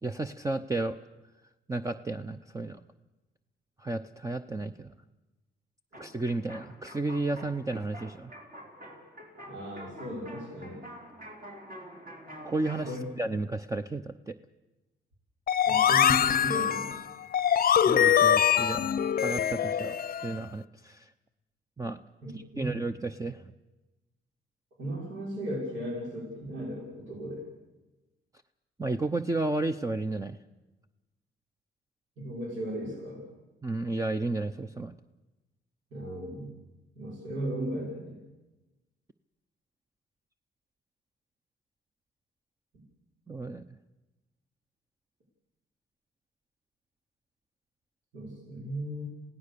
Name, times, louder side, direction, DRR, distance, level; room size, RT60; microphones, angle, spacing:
voice 1, 0.0-1.0 1.7-2.8 3.8-4.9 6.0-8.3 12.4-14.4 17.9-21.1 21.8-22.0 22.3-23.5 28.8-30.4 33.6-34.9 43.3-43.6, right 2 dB, 15° right, 8 dB, 0.7 m, -33 dB
sound 1, 5.9-12.9, equal, 45° right, 4.6 m, -47 dB
voice 2, 9.5-10.9 12.9-13.1 15.7-17.0 22.2-22.8 24.8-27.5 32.2-33.2 35.9-36.6 37.0-38.2 42.7-42.8 48.1-49.0, right 1 dB, 75° right, -1 dB, 5.5 m, -36 dB
sound 2, 15.5-20.4, left 9 dB, 45° left, 0.7 m, -24 dB
26.5 x 17.0 x 6.8 m, 1.1 s
cardioid pair, 90°, 20 cm